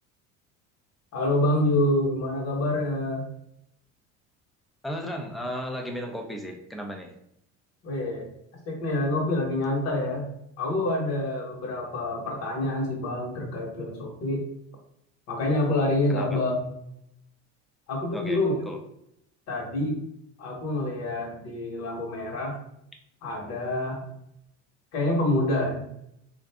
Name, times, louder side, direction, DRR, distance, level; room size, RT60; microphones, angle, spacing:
voice 1, 1.1-3.2 7.8-8.3 8.6-10.3 10.6-14.4 15.3-16.7 17.9-18.5 19.5-20.0 20.4-22.6 23.2-24.0 24.9-25.9, left 1 dB, 55° left, -1 dB, 1.3 m, -27 dB
voice 2, 4.8-7.2 16.1-16.4 18.1-18.4 18.7-18.8, equal, ahead, 2 dB, 0.4 m, -34 dB
3.6 x 2.5 x 3.5 m, 0.75 s
cardioid pair, 150°, 31 cm